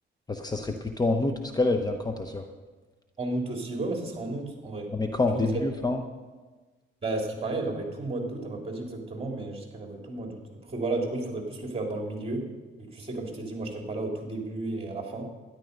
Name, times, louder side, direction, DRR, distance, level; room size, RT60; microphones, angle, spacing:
voice 1, 0.3-2.4 4.9-6.0, left 2 dB, 20° left, 5 dB, 0.9 m, -27 dB
voice 2, 3.2-4.9 5.3-5.5 7.0-12.5 12.8-15.2, right 2 dB, 30° right, 1 dB, 3.1 m, -33 dB
13.0 x 11.0 x 5.3 m, 1.3 s
cardioid pair, 90°, 20 cm